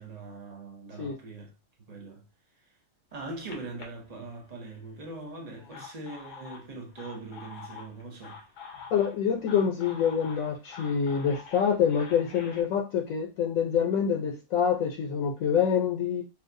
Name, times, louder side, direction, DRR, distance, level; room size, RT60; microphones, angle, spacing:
voice 1, 0.0-1.5 1.9-2.2 2.6-2.7 3.1-8.4, right 3 dB, 40° right, 0.5 m, -41 dB
sound 1, 3.1-4.8 5.5-12.6, left 5 dB, 90° left, 1.3 m, -47 dB
voice 2, 8.9-16.2, left 7 dB, 70° left, 1.0 m, -26 dB
4.4 x 2.4 x 2.5 m
omnidirectional pair, 1.6 m